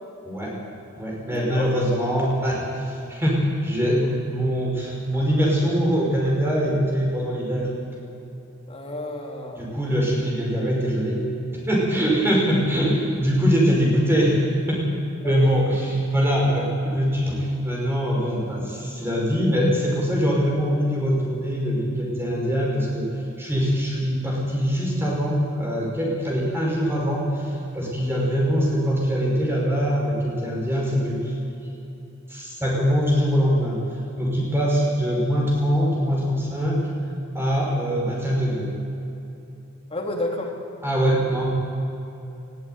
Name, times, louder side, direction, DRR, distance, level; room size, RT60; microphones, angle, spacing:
voice 1, 0.2-0.6 1.0-7.7 9.5-11.3 11.5-14.4 14.7-14.8 15.2-31.3 32.3-33.8 34.2-36.8 37.3-38.7 40.8-41.5, equal, 10° right, -3 dB, 5.6 m, -23 dB
voice 2, 1.3-1.7 8.7-10.0 15.2-15.6 39.9-40.5, left 1 dB, 25° left, 0 dB, 3.0 m, -31 dB
19.5 x 14.5 x 9.6 m, 2.8 s
head